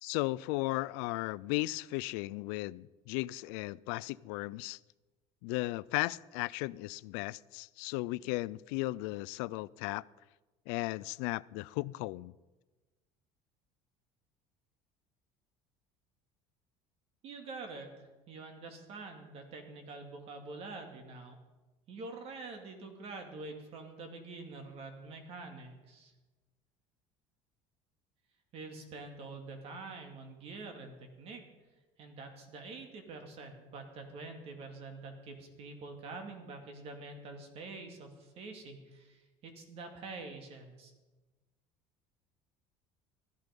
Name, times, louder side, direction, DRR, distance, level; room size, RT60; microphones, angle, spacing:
voice 1, 0.0-4.8 5.4-10.0 10.7-12.3, left 20 dB, 90° left, 21 dB, 0.4 m, -36 dB
voice 2, 17.2-17.9 18.3-21.4 21.9-26.1 28.5-31.4 32.0-40.9, right 3 dB, 50° right, 5 dB, 2.5 m, -46 dB
15.0 x 12.0 x 5.3 m, 1.2 s
cardioid pair, 135°, 13 cm